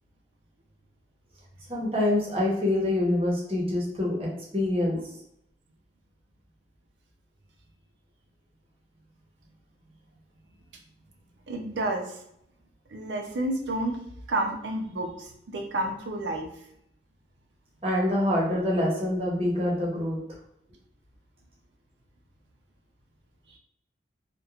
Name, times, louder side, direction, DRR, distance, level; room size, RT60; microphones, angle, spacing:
voice 1, 1.7-5.0 17.8-20.2, left 1 dB, 30° right, -3 dB, 0.7 m, -26 dB
voice 2, 11.5-12.2 12.9-14.0 14.3-16.5 23.5-23.6, right 1 dB, 80° right, 3 dB, 0.5 m, -30 dB
2.9 x 2.1 x 2.3 m, 0.75 s
head